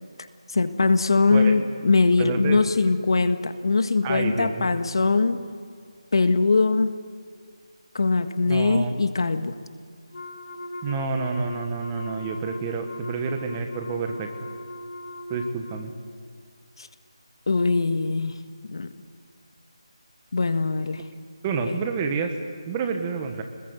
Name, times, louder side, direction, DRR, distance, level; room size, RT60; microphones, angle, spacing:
voice 1, 0.5-5.4 6.1-7.0 7.9-9.5 16.8-16.9 17.5-18.3 18.7-18.9 20.3-21.0 21.6-21.7, left 3 dB, 55° left, 9 dB, 1.6 m, -21 dB
voice 2, 2.2-2.6 4.0-4.8 8.4-8.9 10.8-14.3 15.3-15.9 21.4-22.3 22.7-23.4, right 5 dB, 15° right, 5 dB, 1.3 m, -28 dB
Wind instrument woodwind instrument, 10.1-15.9, left 1 dB, 75° left, 2.8 m, -39 dB
27.5 x 21.0 x 8.1 m, 2.1 s
figure-of-eight pair, 170°, 3 cm